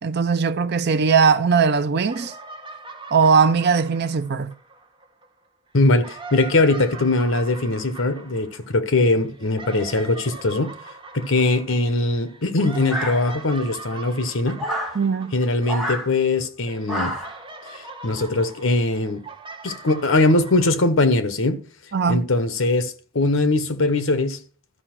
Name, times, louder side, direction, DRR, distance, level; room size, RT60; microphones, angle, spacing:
voice 1, 0.0-2.3 3.1-4.5 14.9-15.3 21.9-22.2, right 5 dB, 55° right, 0.6 m, -19 dB
sound 1, 2.1-5.3 5.8-16.4 16.7-20.7, right 4 dB, 25° right, 1.5 m, -41 dB
voice 2, 5.7-10.7 11.1-14.6 15.3-17.1 17.7-19.2 19.6-21.6 22.1-24.4, left 2 dB, 70° left, 1.1 m, -21 dB
sound 2, 12.9-13.6 14.6-15.0 15.6-16.1 16.9-17.4, equal, ahead, 2.1 m, -28 dB
12.5 x 5.0 x 6.0 m
head